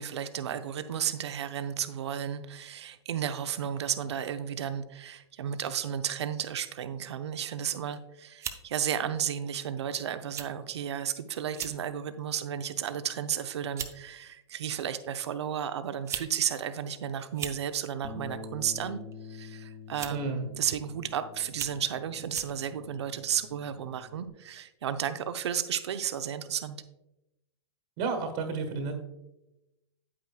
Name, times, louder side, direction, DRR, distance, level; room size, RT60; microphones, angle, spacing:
voice 1, 0.0-19.0 19.3-26.8, right 9 dB, 70° right, 10 dB, 0.7 m, -33 dB
sound 1, 7.7-8.0 8.4-8.6 9.5-9.7 10.3-10.5 10.8-10.9 11.5-11.8 12.3-12.6 13.4-13.5 13.8-14.0 15.0-15.1 15.9-16.3 16.6-16.7 17.2-17.6 18.8-19.1 19.9-20.3 20.9-21.0 21.5-21.8 22.3-22.5, right 8 dB, 20° right, 0.5 m, -38 dB
Bass guitar, 18.0-24.3, left 4 dB, 25° left, 1.2 m, -46 dB
voice 2, 20.1-20.5 28.0-29.0, right 4 dB, 40° right, 5 dB, 1.4 m, -31 dB
8.7 x 8.5 x 2.3 m, 0.94 s
hypercardioid pair, 120°, 15 cm